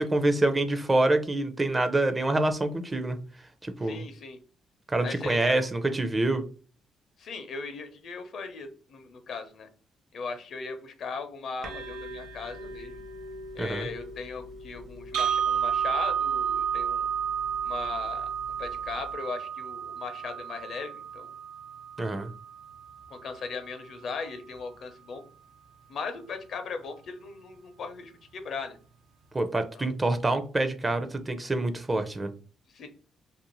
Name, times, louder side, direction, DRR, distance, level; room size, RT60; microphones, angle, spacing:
voice 1, 0.0-3.2 3.6-4.0 4.9-6.4 13.6-13.9 22.0-22.3 29.3-32.3, right 2 dB, 20° right, 8 dB, 0.4 m, -26 dB
voice 2, 3.8-4.4 5.0-5.5 7.2-9.7 10.1-13.0 13.5-17.1 17.6-18.3 18.6-21.3 23.1-25.2 25.9-28.8 29.7-29.9 32.7-32.9, left 4 dB, 65° left, 7 dB, 0.6 m, -38 dB
sound 1, 11.6-19.1, left 1 dB, 55° right, 0.7 m, -44 dB
sound 2, 15.1-23.2, right 8 dB, 85° right, 0.4 m, -31 dB
2.5 x 2.4 x 3.0 m, 0.38 s
cardioid pair, 90°, 0 cm